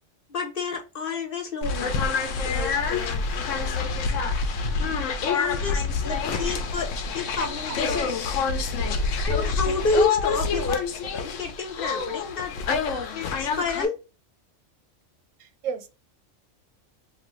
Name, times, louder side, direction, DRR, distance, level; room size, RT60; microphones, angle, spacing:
voice 1, 0.3-2.0 2.4-3.2 5.3-8.1 9.2-10.8 11.1-12.5 12.8-13.9, left 3 dB, 50° left, 0.9 m, -29 dB
sound 1, 1.6-13.9, left 5 dB, 80° left, 1.0 m, -27 dB
voice 2, 7.4-7.8 11.9-12.1 15.4-15.9, right 7 dB, 90° right, 1.0 m, -35 dB
2.9 x 2.6 x 3.0 m
omnidirectional pair, 1.3 m